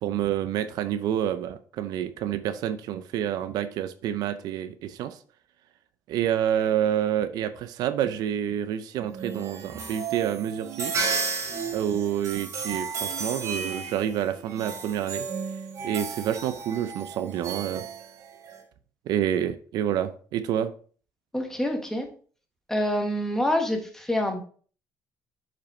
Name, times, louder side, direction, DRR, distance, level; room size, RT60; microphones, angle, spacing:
voice 1, 0.0-5.2 6.1-10.9 11.2-11.4 11.7-15.3 15.8-17.9 19.1-20.7, right 10 dB, 80° right, 12 dB, 0.5 m, -28 dB
sound 1, 9.1-18.6, right 5 dB, 50° right, 1.4 m, -33 dB
voice 2, 21.3-22.1 22.7-24.4, left 1 dB, 5° left, 3 dB, 1.4 m, -26 dB
7.1 x 5.2 x 3.1 m, 0.43 s
cardioid pair, 125°, 7 cm